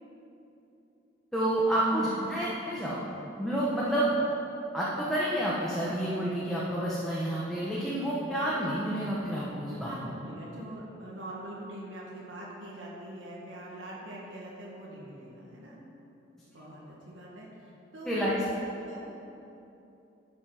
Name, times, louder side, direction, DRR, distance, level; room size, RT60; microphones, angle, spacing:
voice 1, 1.3-3.0 3.4-4.1 4.7-9.9 18.0-18.4, right 1 dB, ahead, -8 dB, 1.0 m, -29 dB
voice 2, 9.8-15.8 16.5-18.3 18.8-19.0, right 1 dB, 85° right, -5 dB, 1.8 m, -43 dB
12.0 x 5.7 x 4.9 m, 2.9 s
head